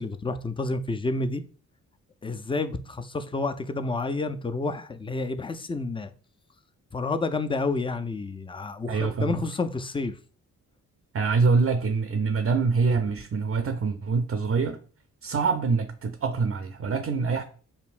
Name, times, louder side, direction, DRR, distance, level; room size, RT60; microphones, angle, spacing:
voice 1, 0.0-1.4 2.2-6.1 6.9-10.1, left 3 dB, 15° left, 0.4 m, -29 dB
voice 2, 8.9-9.5 11.1-14.8 15.2-17.4, right 4 dB, 40° right, 0.5 m, -25 dB
5.4 x 2.1 x 2.5 m
supercardioid pair, 45°, 37 cm